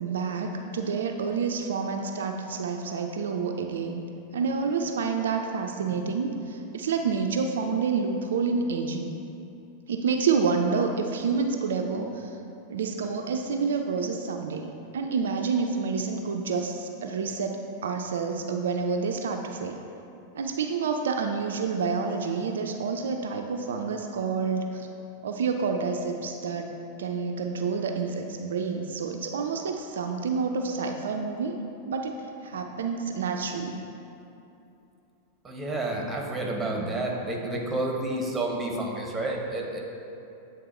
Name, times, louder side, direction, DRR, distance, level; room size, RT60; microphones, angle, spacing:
voice 1, 0.0-4.0 4.3-9.1 9.9-12.3 12.7-19.8 20.4-24.9 25.2-26.7 27.0-32.1 32.4-33.7, right 5 dB, 65° right, 4 dB, 0.3 m, -28 dB
voice 2, 35.4-39.8, right 2 dB, 10° right, -1 dB, 1.0 m, -30 dB
8.3 x 3.6 x 4.2 m, 2.8 s
figure-of-eight pair, 90°, 0 cm